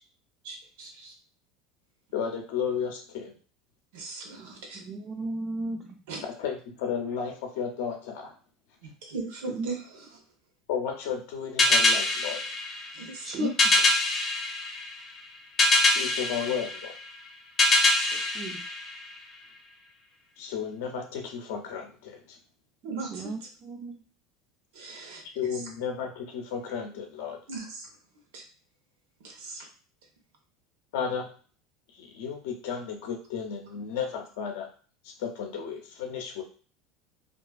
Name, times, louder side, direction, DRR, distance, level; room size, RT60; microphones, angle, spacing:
voice 1, 0.4-1.1 3.9-4.8 6.1-6.2 8.8-10.1 12.9-13.5 17.9-18.2 22.8-23.2 24.7-25.2 27.5-27.9 28.3-28.4 29.2-29.7, right 1 dB, 85° right, 1 dB, 0.8 m, -37 dB
voice 2, 2.1-3.3 6.4-8.3 10.7-12.4 15.8-16.9 20.4-22.4 25.4-27.4 30.9-31.3 32.0-34.7 35.0-36.4, left 7 dB, 75° left, 3 dB, 0.5 m, -33 dB
voice 3, 4.7-6.0 9.5-9.7 13.2-13.5 18.3-18.6 23.0-24.0, right 3 dB, 35° right, 2 dB, 0.3 m, -35 dB
sound 1, 11.6-19.5, left 2 dB, 25° left, 0.5 m, -25 dB
2.5 x 2.3 x 2.3 m, 0.41 s
supercardioid pair, 145°, 0 cm